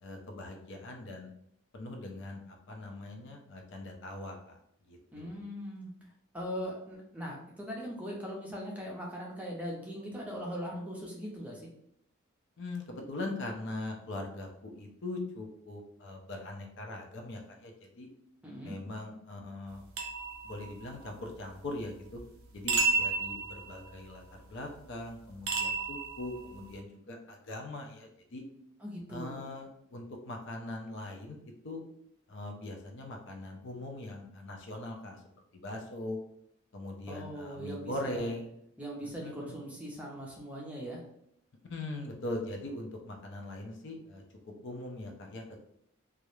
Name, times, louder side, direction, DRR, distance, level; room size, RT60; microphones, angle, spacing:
voice 1, 0.0-1.3 1.7-4.6 4.9-5.4 12.6-17.7 18.0-18.1 18.6-19.8 20.4-22.2 22.5-28.4 29.1-31.4 31.6-31.8 32.3-35.2 35.5-36.2 36.7-38.5 39.2-39.6 41.7-44.2 44.6-45.6, left 2 dB, 60° left, 2 dB, 0.5 m, -41 dB
voice 2, 5.1-5.9 6.3-11.6 18.4-18.7 28.8-29.4 37.1-38.3 38.8-41.0, equal, 5° right, -3 dB, 0.5 m, -40 dB
sound 1, 20.0-21.2 22.7-24.1 25.5-26.8, right 4 dB, 80° right, 0.5 m, -32 dB
2.3 x 2.0 x 3.0 m, 0.74 s
head